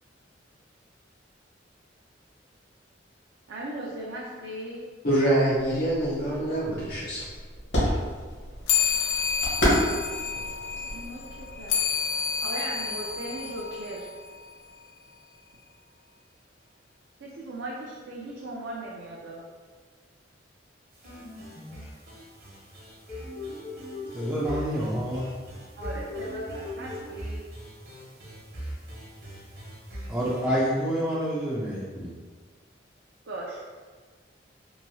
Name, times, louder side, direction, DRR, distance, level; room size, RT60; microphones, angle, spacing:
voice 1, 3.5-4.9 10.9-11.8 12.4-14.1 17.2-19.4 25.8-27.5 33.3-33.6, right 1 dB, 75° right, -5 dB, 0.4 m, -37 dB
voice 2, 5.0-7.2, right 1 dB, 55° left, -9 dB, 0.7 m, -25 dB
sound 1, 5.6-11.9, equal, 70° left, 1.0 m, -31 dB
sound 2, 8.7-14.5, left 7 dB, 85° left, 0.3 m, -29 dB
sound 3, 20.9-30.4, left 1 dB, 55° right, 0.9 m, -39 dB
voice 3, 24.1-25.2 30.1-32.1, equal, 10° right, -7 dB, 0.3 m, -28 dB
3.0 x 2.2 x 2.6 m, 1.5 s
head